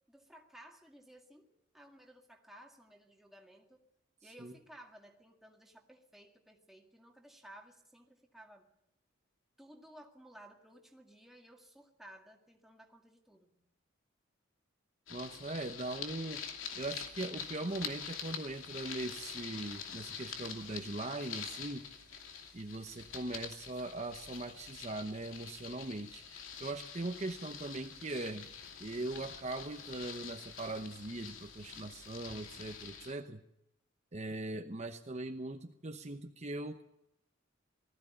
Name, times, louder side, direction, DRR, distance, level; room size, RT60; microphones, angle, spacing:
voice 1, 0.1-3.8 4.2-8.7 9.6-13.6, right 1 dB, ahead, 1 dB, 2.1 m, -57 dB
sound 1, 15.1-33.1, left 7 dB, 90° left, 2.6 m, -46 dB
voice 2, 15.1-16.4 16.8-21.9 22.5-28.5 28.8-33.4 34.1-36.8, right 2 dB, 35° right, 5 dB, 0.9 m, -40 dB
sound 2, 17.6-32.9, left 2 dB, 55° left, 7.4 m, -64 dB
19.5 x 14.5 x 10.0 m, 0.82 s
head